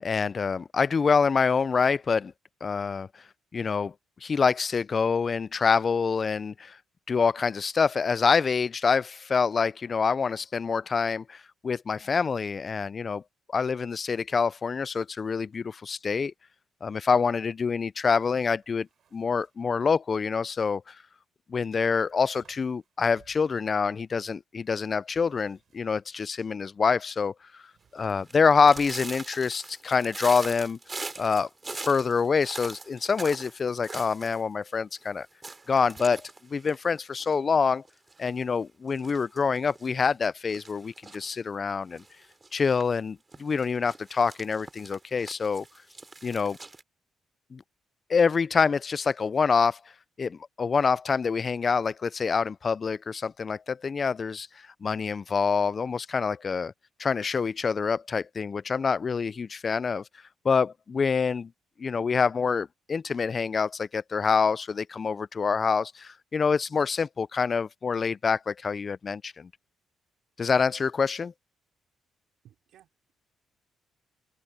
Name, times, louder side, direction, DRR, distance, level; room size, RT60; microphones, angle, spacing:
voice 1, 0.0-2.3 2.6-3.1 3.5-3.9 4.2-6.8 7.1-13.2 13.5-16.3 16.8-21.0 21.5-27.3 27.9-30.8 31.2-35.3 35.7-37.8 38.2-42.0 42.5-45.6 46.2-46.6 47.5-47.6 48.1-49.8 50.2-54.5 54.8-56.7 57.0-60.0 60.4-61.5 61.8-69.5 70.4-71.3, left 5 dB, 40° left, 0.4 m, -26 dB
sound 1, 18.5-19.8 21.8-23.7 25.0-26.2 27.4-29.4, right 8 dB, 60° right, 6.3 m, -62 dB
sound 2, 28.0-34.4 34.7-34.8 35.0-35.1 35.4-37.5 37.9-38.4 38.9-39.9 40.5-41.3 41.9-42.8 43.3-46.8, right 3 dB, 25° right, 3.1 m, -42 dB
voice 2, 72.4-73.1, right 11 dB, 75° right, 4.4 m, -58 dB
open air
cardioid pair, 90°, 0 cm